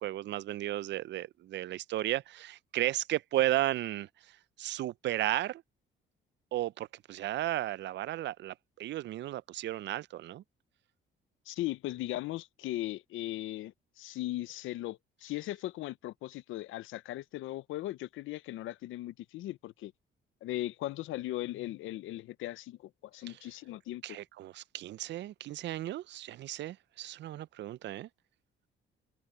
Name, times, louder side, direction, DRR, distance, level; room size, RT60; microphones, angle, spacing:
voice 1, 0.0-5.6 6.5-10.4 23.3-23.4 24.0-28.1, right 14 dB, 65° right, 0.4 m, -34 dB
voice 2, 11.5-19.9 20.4-24.0, left 15 dB, 85° left, 0.6 m, -38 dB
cardioid pair, 90°, 20 cm